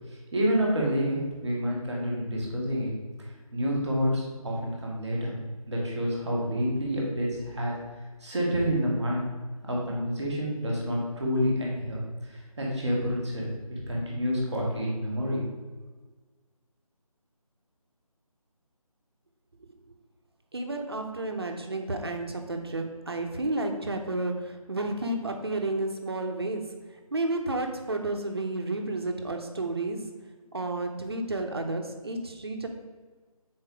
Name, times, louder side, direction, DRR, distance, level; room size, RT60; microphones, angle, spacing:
voice 1, 0.3-2.9 3.5-5.3 5.7-7.8 8.2-9.2 9.6-15.5, equal, 5° left, -19 dB, 0.6 m, -28 dB
voice 2, 20.5-26.7 27.1-30.1 30.5-32.7, right 2 dB, 45° right, 4 dB, 0.7 m, -31 dB
6.6 x 4.3 x 4.8 m, 1.4 s
figure-of-eight pair, 170°, 19 cm